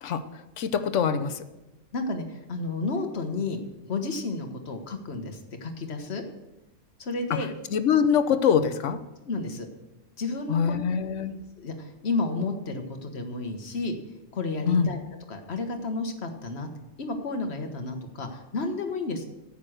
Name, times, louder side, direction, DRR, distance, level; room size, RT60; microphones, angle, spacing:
voice 1, 0.0-1.4 7.3-9.0 10.5-11.3 14.7-14.9, left 7 dB, 70° left, 11 dB, 1.1 m, -24 dB
voice 2, 1.9-3.6 3.9-6.2 7.0-7.5 9.3-9.7 10.2-10.7 11.6-14.0 14.3-15.0 15.3-16.7 17.0-19.3, left 3 dB, 55° left, 5 dB, 1.6 m, -31 dB
10.5 x 8.6 x 6.4 m, 1.0 s
omnidirectional pair, 1.3 m